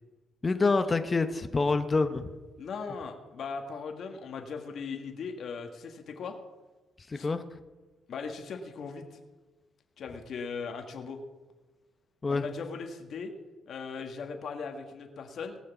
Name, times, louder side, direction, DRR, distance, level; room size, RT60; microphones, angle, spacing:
voice 1, 0.4-2.3 7.1-7.4 12.2-12.4, left 3 dB, 30° left, 9 dB, 0.9 m, -26 dB
voice 2, 2.6-6.3 7.1-7.3 8.1-9.2 10.0-11.2 12.3-13.3 13.7-15.6, left 5 dB, 60° left, 4 dB, 1.6 m, -38 dB
19.0 x 6.4 x 7.1 m, 1.2 s
cardioid pair, 90°, 0 cm